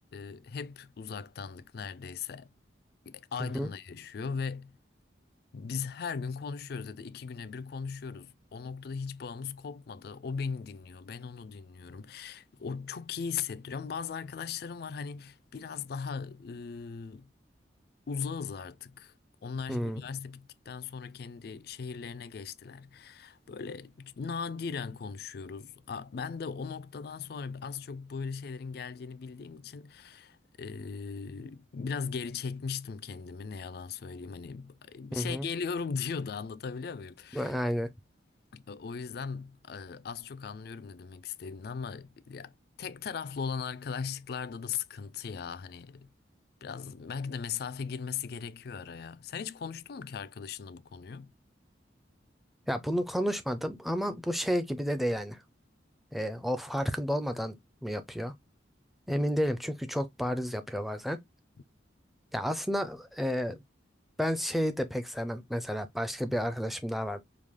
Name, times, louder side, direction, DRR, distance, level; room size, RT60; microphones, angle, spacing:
voice 1, 0.1-2.5 3.1-4.8 5.5-17.3 18.1-19.1 19.4-37.6 38.5-46.1 46.6-51.3, left 6 dB, 55° left, 0.4 m, -38 dB
voice 2, 19.7-20.0 35.1-35.5 37.3-37.9 52.7-55.4 56.1-58.3 59.1-61.2 62.3-63.6 64.2-67.2, equal, ahead, 0.5 m, -31 dB
4.8 x 2.3 x 3.5 m
head